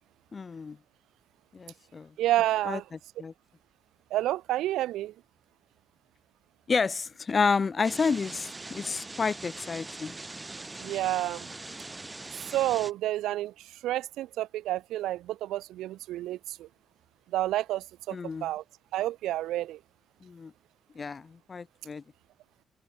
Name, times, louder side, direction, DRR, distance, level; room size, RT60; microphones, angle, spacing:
voice 1, 0.3-0.8 1.5-2.2 2.6-3.3 6.7-10.2 18.1-18.5 20.2-20.5 20.9-22.0, left 5 dB, 35° left, 7.9 m, -30 dB
voice 2, 2.2-2.8 4.1-5.1 10.8-11.5 12.5-16.7 17.3-18.2 18.4-18.6 18.9-19.8, right 14 dB, 85° right, 0.8 m, -29 dB
sound 1, 7.8-12.9, right 2 dB, 20° right, 2.3 m, -42 dB
cardioid pair, 90°, 0 cm